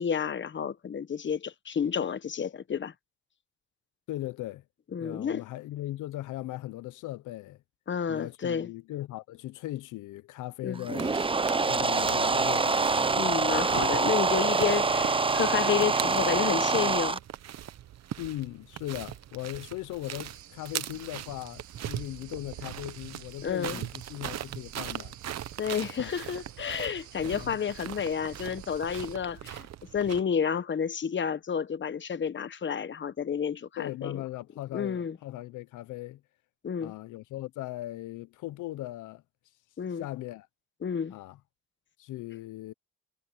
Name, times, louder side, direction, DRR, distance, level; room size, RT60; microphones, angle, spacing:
voice 1, 0.0-2.9 4.9-5.4 7.9-8.7 10.6-10.9 13.2-17.2 23.4-23.8 25.6-29.7 29.9-34.2 34.7-35.2 36.6-36.9 39.8-40.0 40.8-41.1, left 7 dB, 40° left, 1.2 m, -30 dB
voice 2, 4.1-4.6 5.0-7.6 8.1-11.3 11.6-12.9 18.2-25.2 26.0-26.1 27.2-27.5 33.8-36.2 36.8-39.2 39.9-40.5 41.1-41.4 42.0-42.7, left 16 dB, 85° left, 0.7 m, -38 dB
sound 1, 10.8-17.2, right 4 dB, 20° right, 0.7 m, -25 dB
sound 2, 11.0-30.2, right 11 dB, 60° right, 1.0 m, -41 dB
sound 3, 20.2-29.2, right 11 dB, 75° right, 4.1 m, -53 dB
cardioid pair, 90°, 30 cm